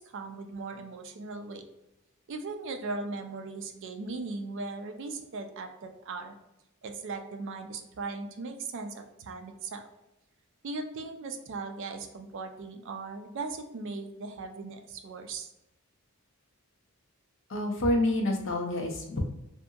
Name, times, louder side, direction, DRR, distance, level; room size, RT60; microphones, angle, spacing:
voice 1, 0.0-1.6 2.3-6.3 6.8-9.8 10.6-15.5, right 3 dB, 55° right, 5 dB, 0.4 m, -38 dB
voice 2, 17.5-19.2, left 1 dB, 60° left, 1 dB, 0.6 m, -28 dB
2.7 x 2.5 x 2.3 m, 0.93 s
head